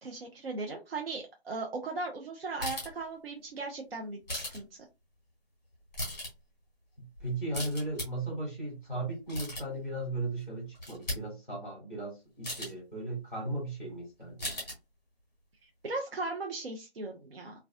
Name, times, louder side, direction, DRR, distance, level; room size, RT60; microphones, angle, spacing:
voice 1, 0.0-4.7 15.8-17.5, right 3 dB, 65° right, 1 dB, 0.6 m, -37 dB
sound 1, 2.6-3.0 4.3-4.6 5.7-6.3 7.1-8.0 9.1-9.8 10.4-10.5 10.7-11.2 12.4-12.7 14.4-14.7, left 1 dB, 15° left, 1.0 m, -37 dB
voice 2, 7.0-14.5, right 2 dB, 10° right, -3 dB, 0.9 m, -36 dB
2.4 x 2.2 x 2.3 m, 0.25 s
figure-of-eight pair, 165°, 32 cm